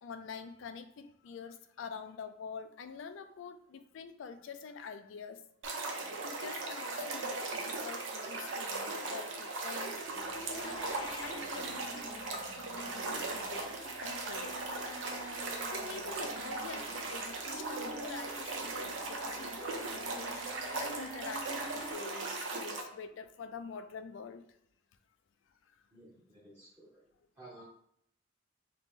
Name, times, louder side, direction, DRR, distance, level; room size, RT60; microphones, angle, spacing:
voice 1, 0.0-5.4 6.1-14.6 15.7-24.5 25.5-25.8, left 5 dB, 70° left, 10 dB, 0.4 m, -47 dB
sound 1, 5.6-22.8, right 3 dB, 70° right, 0.6 m, -38 dB
sound 2, 10.2-21.9, equal, 25° left, 0.7 m, -48 dB
voice 2, 25.9-26.9 27.4-27.6, right 2 dB, 15° right, -8 dB, 0.8 m, -54 dB
3.0 x 2.8 x 3.5 m, 0.70 s
head